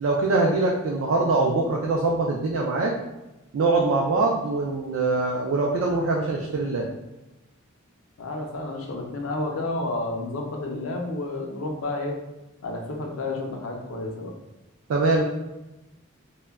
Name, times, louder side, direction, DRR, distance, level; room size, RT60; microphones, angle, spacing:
voice 1, 0.0-2.9 3.5-6.9 14.9-15.2, right 3 dB, 70° right, -1 dB, 0.3 m, -23 dB
voice 2, 8.2-12.2 12.6-14.3, left 2 dB, 75° left, 1 dB, 0.5 m, -30 dB
2.1 x 2.1 x 3.4 m, 1.0 s
head